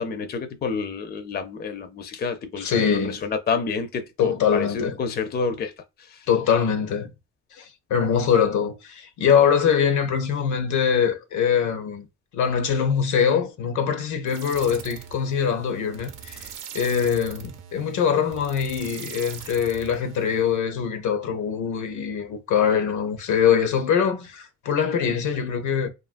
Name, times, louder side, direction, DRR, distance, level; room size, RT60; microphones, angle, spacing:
voice 1, 0.0-6.3, left 5 dB, 35° left, 0.5 m, -29 dB
voice 2, 2.6-3.2 4.2-5.0 6.3-7.1 7.5-12.1 12.3-25.9, left 7 dB, 75° left, 0.7 m, -23 dB
sound 1, 14.3-20.6, right 8 dB, 90° right, 0.6 m, -41 dB
2.7 x 2.4 x 2.5 m
cardioid pair, 90°, 30 cm